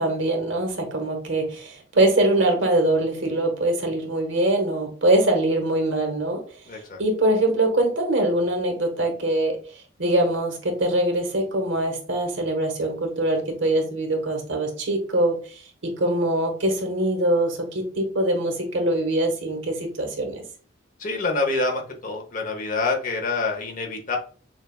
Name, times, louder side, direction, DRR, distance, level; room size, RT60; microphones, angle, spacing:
voice 1, 0.0-6.4 7.0-9.6 10.0-20.4, right 1 dB, 75° right, 3 dB, 1.1 m, -23 dB
voice 2, 6.7-7.0 21.0-24.2, left 3 dB, 45° left, 3 dB, 0.8 m, -26 dB
6.3 x 2.3 x 2.3 m, 0.41 s
head